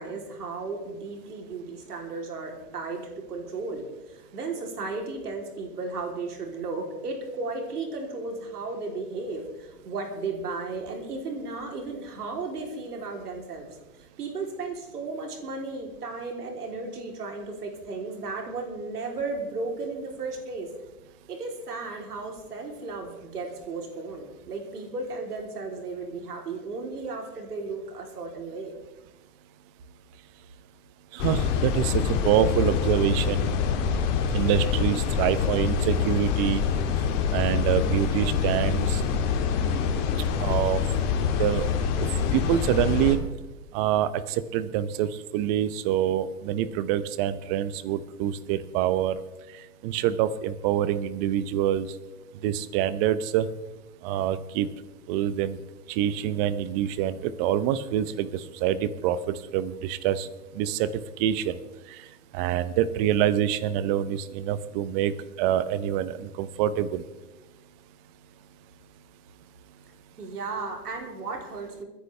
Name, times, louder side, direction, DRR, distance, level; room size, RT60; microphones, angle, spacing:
voice 1, 0.0-13.8 14.2-20.7 21.3-28.8 70.2-71.8, right 3 dB, 85° right, 2 dB, 3.5 m, -35 dB
voice 2, 31.1-33.5 34.3-36.6 37.3-39.0 39.7-39.8 40.4-40.8 41.4-41.6 42.3-43.2 43.7-49.2 49.8-51.9 52.4-53.5 54.0-54.7 55.1-55.6 55.9-60.3 60.5-60.9 61.2-61.6 61.9-62.0 62.3-65.1 65.4-67.0, right 11 dB, 40° right, 15 dB, 0.9 m, -26 dB
sound 1, 31.2-43.2, left 6 dB, 50° left, 2.1 m, -25 dB
29.5 x 10.0 x 3.4 m, 1.1 s
hypercardioid pair, 120°, 45 cm